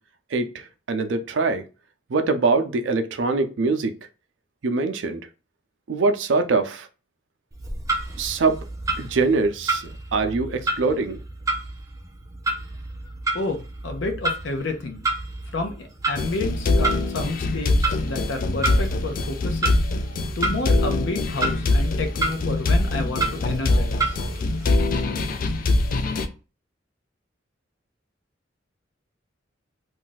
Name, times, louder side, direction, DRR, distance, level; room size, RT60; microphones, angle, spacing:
voice 1, 0.9-1.6 2.1-3.9 4.6-5.2 5.9-6.9 8.2-8.6 9.0-11.2, right 3 dB, 75° right, 0.5 m, -23 dB
Clock, 7.5-24.7, right 2 dB, 20° right, 0.4 m, -31 dB
voice 2, 13.3-15.1 15.5-19.8 20.4-24.2, left 2 dB, 75° left, 0.7 m, -30 dB
sound 1, 16.2-26.3, left 2 dB, 45° left, 0.3 m, -23 dB
2.5 x 2.3 x 3.9 m
head